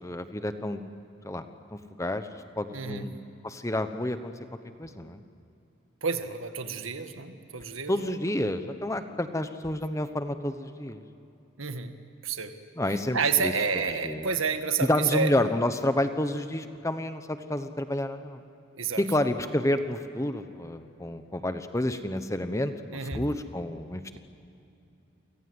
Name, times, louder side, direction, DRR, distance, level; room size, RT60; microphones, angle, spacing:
voice 1, 0.0-0.8 1.2-1.4 1.7-2.3 2.6-4.3 4.8-5.2 7.9-11.0 12.8-13.5 14.0-14.3 14.8-18.4 19.0-24.2, left 1 dB, 15° left, 9 dB, 1.0 m, -29 dB
voice 2, 2.7-3.1 6.0-8.2 11.6-12.0 12.2-12.6 13.1-15.3 18.7-19.0 22.9-23.2 24.1-24.2, right 5 dB, 80° right, 8 dB, 1.7 m, -29 dB
30.0 x 25.0 x 8.0 m, 2.7 s
head